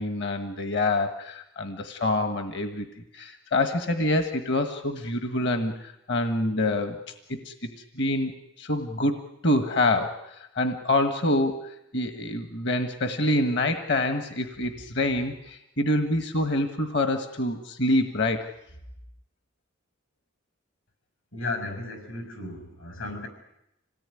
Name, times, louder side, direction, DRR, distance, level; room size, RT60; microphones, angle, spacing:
voice 1, 0.0-7.0 7.4-7.7 7.9-8.3 8.6-18.4, left 1 dB, 55° left, 8 dB, 1.6 m, -26 dB
voice 2, 21.3-23.3, left 2 dB, 75° left, 8 dB, 6.2 m, -34 dB
27.0 x 18.0 x 9.8 m, 0.84 s
head